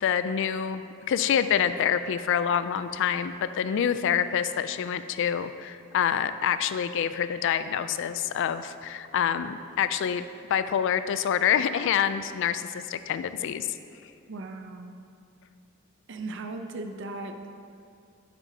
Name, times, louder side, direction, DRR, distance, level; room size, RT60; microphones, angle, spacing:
voice 1, 0.0-13.7, left 8 dB, 60° left, 12 dB, 0.3 m, -27 dB
voice 2, 14.3-15.1 16.1-17.5, right 2 dB, 60° right, 6 dB, 0.5 m, -37 dB
9.0 x 7.7 x 2.8 m, 2.5 s
head